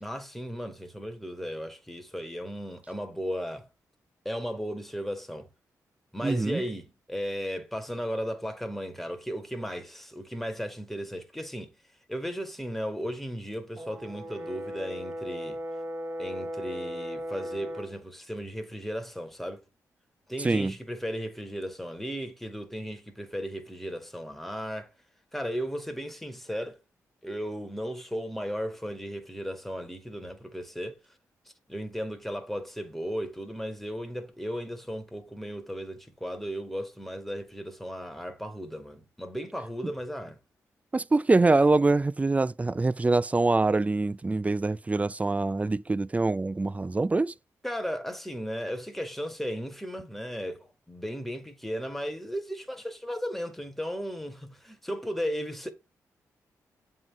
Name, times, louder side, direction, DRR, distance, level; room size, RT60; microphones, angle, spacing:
voice 1, 0.0-3.7 4.3-5.5 6.1-11.7 12.1-15.6 16.2-19.6 20.3-24.9 25.3-26.8 27.2-31.0 31.7-40.4 47.6-55.7, equal, 5° left, 1.8 m, -35 dB
voice 2, 6.2-6.6 20.4-20.7 40.9-47.3, right 3 dB, 20° right, 0.4 m, -24 dB
Brass instrument, 13.8-18.0, equal, 40° right, 1.9 m, -37 dB
7.6 x 3.8 x 5.9 m
cardioid pair, 60°, 7 cm